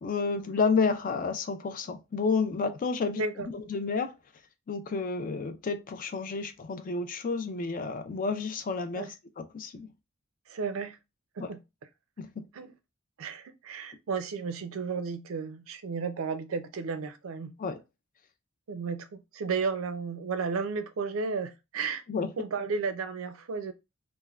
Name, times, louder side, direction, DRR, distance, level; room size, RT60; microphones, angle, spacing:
voice 1, 0.0-3.2 3.5-4.1 4.7-9.9 11.4-11.5 12.2-12.4 17.6-17.8 22.1-22.3, left 4 dB, 40° left, 0.4 m, -30 dB
voice 2, 3.1-3.5 8.9-9.1 10.5-11.0 11.4-11.6 12.5-12.7 13.2-17.5 18.7-22.0 22.4-23.7, right 5 dB, 80° right, 0.4 m, -33 dB
3.3 x 2.1 x 2.3 m
head